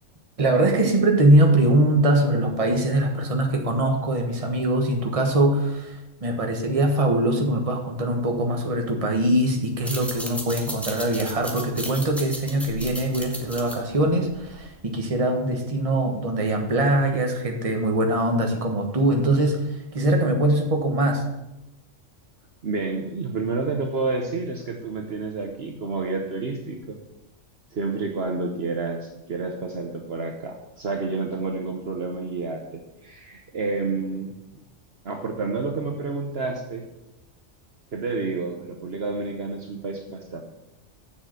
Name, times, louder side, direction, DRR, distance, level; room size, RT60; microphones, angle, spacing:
voice 1, 0.4-19.6 19.9-21.2, right 1 dB, 30° right, 3 dB, 1.3 m, -22 dB
sound 1, 9.7-14.9, equal, ahead, 1.1 m, -36 dB
voice 2, 22.6-27.0 27.7-34.3 35.0-36.9 37.9-40.4, right 3 dB, 55° right, 3 dB, 1.1 m, -29 dB
7.5 x 6.9 x 6.4 m, 0.92 s
omnidirectional pair, 1.3 m